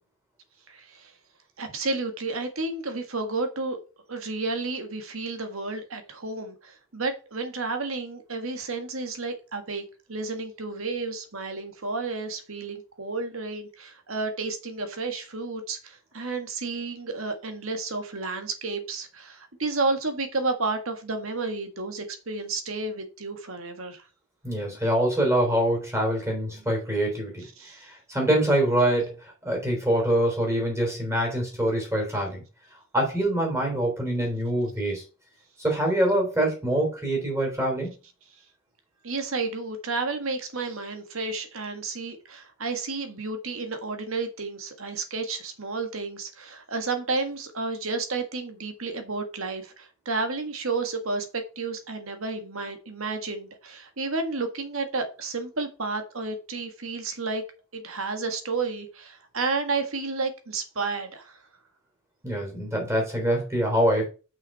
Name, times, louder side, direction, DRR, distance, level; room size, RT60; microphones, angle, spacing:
voice 1, 0.7-1.1 1.6-3.8 4.1-24.0 27.6-27.9 39.0-57.4 57.7-61.4, right 3 dB, 75° right, 7 dB, 1.7 m, -31 dB
voice 2, 24.4-27.5 27.8-29.1 29.4-32.4 32.9-35.0 35.6-37.9 62.2-64.0, right 1 dB, 15° right, 0 dB, 3.5 m, -24 dB
6.4 x 6.0 x 5.6 m, 0.34 s
head